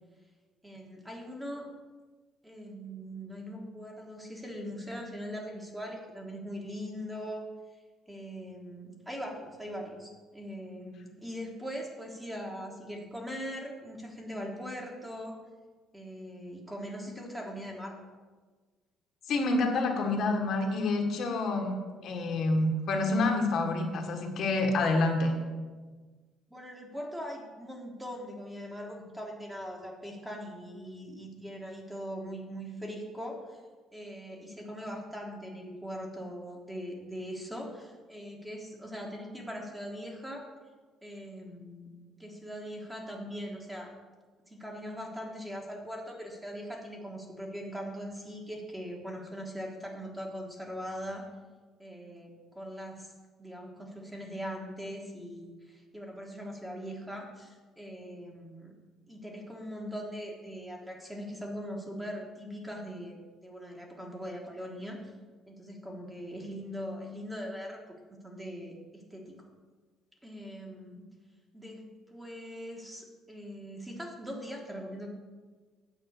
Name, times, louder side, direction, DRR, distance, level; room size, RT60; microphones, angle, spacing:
voice 1, 0.6-1.7 2.4-7.4 8.1-15.4 15.9-18.0 26.5-33.6 33.9-40.5 41.0-41.9 42.2-43.9 44.5-51.3 51.8-53.1 53.4-58.7 59.1-65.1 65.5-67.8 68.1-69.4 70.2-71.0 71.5-75.1, equal, 5° right, 0 dB, 1.6 m, -41 dB
voice 2, 19.3-21.7 22.0-25.3, left 2 dB, 50° left, 3 dB, 1.4 m, -27 dB
9.1 x 5.5 x 8.1 m, 1.4 s
cardioid pair, 155°, 0 cm